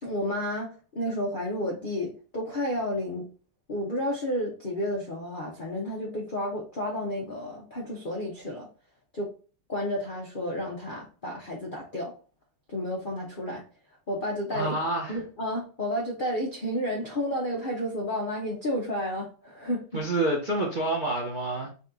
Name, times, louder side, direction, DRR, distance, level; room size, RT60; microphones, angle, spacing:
voice 1, 0.0-3.3 3.7-8.7 9.1-9.3 9.7-12.1 12.7-13.6 14.1-14.8 15.1-19.8, equal, 60° left, 0.5 m, -31 dB
voice 2, 14.5-15.2 19.9-21.7, right 2 dB, 40° right, 0.7 m, -28 dB
4.1 x 2.8 x 3.6 m
omnidirectional pair, 2.2 m